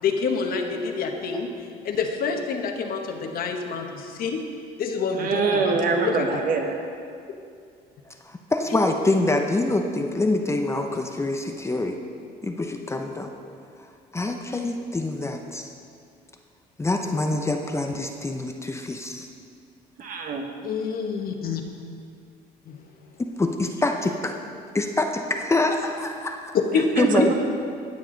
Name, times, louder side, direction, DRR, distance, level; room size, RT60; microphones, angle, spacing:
voice 1, 0.0-1.5 1.8-4.4 4.8-6.4 8.7-8.8 20.6-21.6 22.7-22.8 26.7-27.3, left 5 dB, 60° left, 4 dB, 1.2 m, -27 dB
voice 2, 5.2-6.8 20.0-20.4 27.0-27.3, right 4 dB, 55° right, 4 dB, 1.3 m, -24 dB
voice 3, 8.3-12.0 12.4-13.3 14.1-15.7 16.8-19.3 23.4-24.4 24.7-26.5 27.0-27.3, left 2 dB, 15° left, 4 dB, 0.7 m, -25 dB
17.5 x 7.1 x 3.9 m, 2.4 s
cardioid pair, 110°, 17 cm